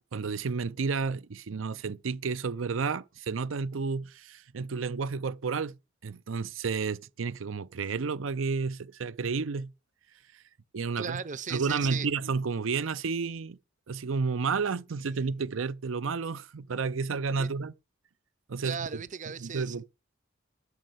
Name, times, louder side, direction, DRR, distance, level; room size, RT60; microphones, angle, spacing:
voice 1, 0.1-5.8 6.0-9.7 10.3-10.4 10.7-11.2 11.5-13.6 13.9-17.7 18.5-18.9 19.4-19.8, right 5 dB, 90° right, 0.6 m, -31 dB
voice 2, 11.0-12.1 17.4-17.5 18.6-19.8, right 7 dB, 40° right, 0.6 m, -37 dB
13.0 x 6.4 x 7.9 m
head